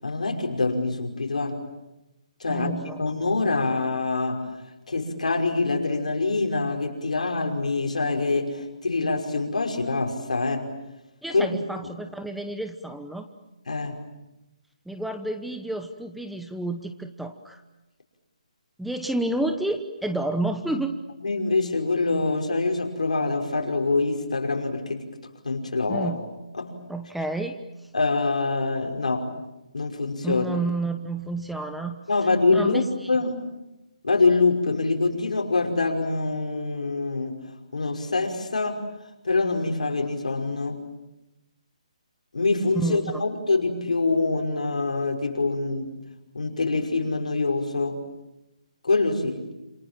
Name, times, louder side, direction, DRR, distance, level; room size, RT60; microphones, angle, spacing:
voice 1, 0.0-1.6 2.4-2.7 3.0-4.4 4.9-10.7 11.3-11.5 13.7-14.0 21.2-25.0 25.4-26.1 26.5-26.8 27.9-29.3 29.7-30.5 32.1-32.8 33.1-33.4 34.0-37.4 37.7-38.8 39.2-40.8 42.3-45.9 46.3-48.0 48.8-49.4, left 3 dB, 80° left, 3 dB, 5.5 m, -25 dB
voice 2, 2.5-3.0 11.2-13.3 14.9-17.6 18.8-21.0 25.9-26.2 26.9-27.5 30.2-32.0 32.5-33.1 42.8-43.2, right 2 dB, ahead, 7 dB, 1.0 m, -30 dB
28.0 x 27.5 x 7.5 m, 0.95 s
hypercardioid pair, 155°, 4 cm